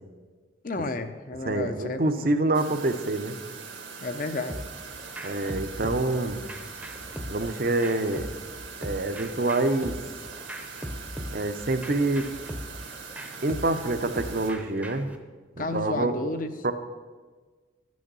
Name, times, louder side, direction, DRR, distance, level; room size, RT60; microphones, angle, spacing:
voice 1, 0.6-2.3 4.0-4.6 15.6-16.5, left 2 dB, 45° left, 9 dB, 0.7 m, -32 dB
voice 2, 1.4-3.3 5.2-6.4 7.3-8.3 8.8-10.0 11.3-12.2 13.4-15.1 15.6-16.1 16.6-16.7, right 2 dB, 50° right, 9 dB, 0.7 m, -26 dB
sound 1, 2.5-14.5, right 5 dB, 80° right, 1.7 m, -42 dB
sound 2, 4.5-15.2, equal, 10° right, 0.7 m, -40 dB
11.0 x 6.3 x 6.8 m, 1.4 s
head